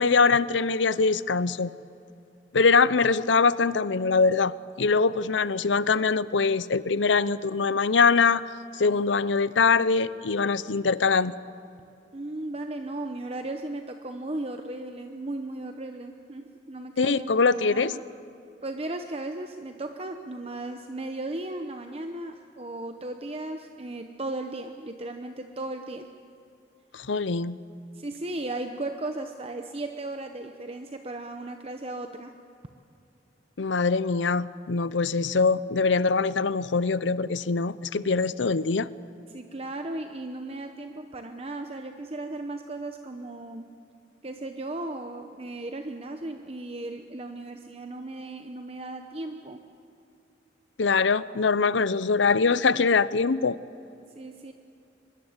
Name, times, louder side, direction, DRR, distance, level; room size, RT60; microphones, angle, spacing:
voice 1, 0.0-1.7 2.5-8.4 8.8-11.4 17.0-17.9 26.9-27.6 33.6-38.9 50.8-53.6, left 4 dB, 85° left, 17 dB, 0.7 m, -23 dB
voice 2, 12.1-18.0 18.6-26.1 27.9-32.4 39.3-43.7 44.2-49.6 54.1-54.5, right 2 dB, 35° right, 6 dB, 0.9 m, -36 dB
24.0 x 21.0 x 8.1 m, 2.7 s
head